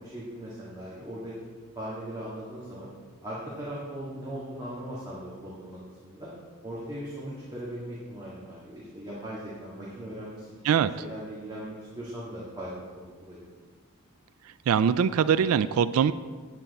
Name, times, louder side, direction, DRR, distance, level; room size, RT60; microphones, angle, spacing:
voice 1, 0.0-1.3 1.8-2.9 3.2-5.8 6.0-6.3 6.6-12.7 13.2-13.4, right 1 dB, 20° right, -7 dB, 1.7 m, -39 dB
voice 2, 14.7-16.1, right 7 dB, 75° right, 14 dB, 0.3 m, -22 dB
9.2 x 8.9 x 4.1 m, 1.5 s
head